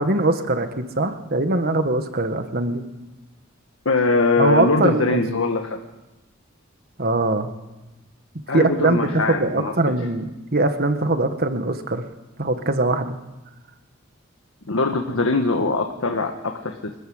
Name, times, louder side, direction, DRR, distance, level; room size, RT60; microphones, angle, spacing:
voice 1, 0.0-2.8 4.4-5.2 7.0-7.5 8.5-12.0 12.4-13.2, right 2 dB, 50° right, 8 dB, 1.7 m, -22 dB
voice 2, 3.8-5.8 8.5-10.0 14.7-17.0, left 3 dB, 90° left, 4 dB, 1.5 m, -22 dB
23.5 x 14.0 x 8.0 m, 1.1 s
head